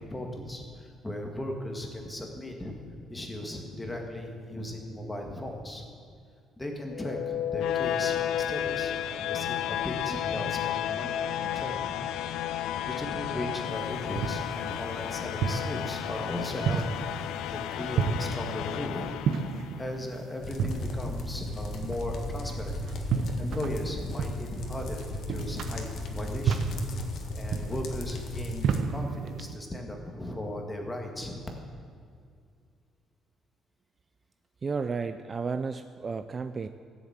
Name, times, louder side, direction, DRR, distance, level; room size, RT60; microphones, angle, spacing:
voice 1, 0.0-2.7 3.1-5.9 6.6-12.0 12.8-19.1 19.8-22.8 23.4-26.7 27.3-31.4, left 1 dB, 10° left, 2 dB, 1.9 m, -37 dB
sound 1, 6.9-19.9, left 10 dB, 90° left, 0.5 m, -32 dB
sound 2, 13.7-29.6, right 6 dB, 65° right, 0.8 m, -33 dB
sound 3, 20.4-28.8, left 1 dB, 60° left, 1.6 m, -36 dB
voice 2, 34.6-36.7, right 5 dB, 30° right, 10 dB, 0.4 m, -32 dB
16.0 x 7.2 x 8.8 m, 2.2 s
cardioid pair, 145°, 0 cm